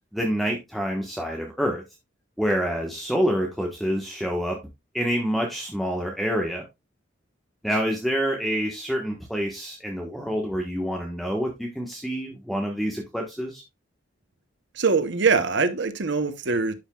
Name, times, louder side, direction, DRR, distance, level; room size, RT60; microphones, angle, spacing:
voice 1, 0.1-1.8 2.4-4.6 4.9-6.6 7.6-13.6, equal, ahead, 1.3 m, -27 dB
voice 2, 14.7-16.7, right 4 dB, 65° right, 1.0 m, -23 dB
12.0 x 5.5 x 2.4 m
head